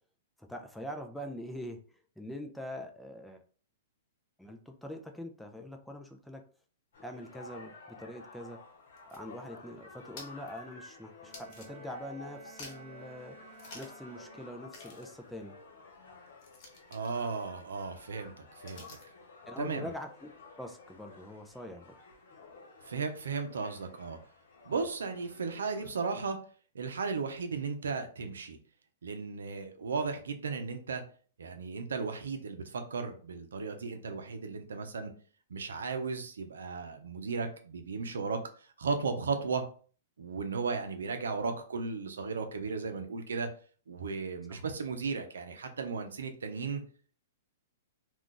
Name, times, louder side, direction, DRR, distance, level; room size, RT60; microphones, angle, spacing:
voice 1, 0.4-3.4 4.4-6.4 7.0-8.6 9.1-13.4 13.7-15.6 18.7-18.8 19.5-20.3 20.6-22.0 44.5-44.6, left 1 dB, ahead, 3 dB, 0.4 m, -43 dB
sound 1, 6.9-25.9, left 3 dB, 70° left, 0.9 m, -52 dB
sound 2, 8.7-12.1 12.4-13.0 13.5-14.1 14.3-14.4 14.7-19.2, left 3 dB, 50° left, 1.1 m, -53 dB
Bowed string instrument, 11.2-15.0, right 5 dB, 50° right, 0.6 m, -55 dB
voice 2, 16.9-18.8 19.6-19.9 22.8-24.2 24.6-26.4 26.7-28.6 29.0-31.0 31.4-35.1 35.5-39.6 40.2-43.5 43.9-46.8, right 4 dB, 85° right, 6 dB, 0.6 m, -35 dB
2.5 x 2.4 x 3.7 m, 0.42 s
hypercardioid pair, 130°, 0 cm